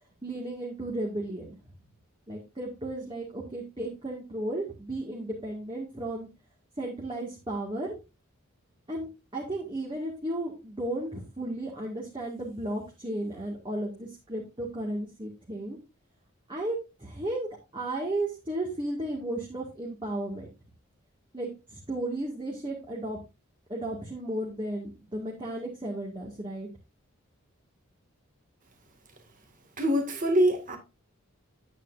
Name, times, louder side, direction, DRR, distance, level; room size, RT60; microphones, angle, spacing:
voice 1, 0.2-1.6 2.3-6.3 6.8-8.0 8.9-9.1 9.3-15.8 16.5-20.5 21.3-23.2 23.7-26.7, right 1 dB, 25° right, 2.0 m, -34 dB
voice 2, 29.8-30.8, equal, 40° right, 2.1 m, -24 dB
9.4 x 9.0 x 2.6 m
head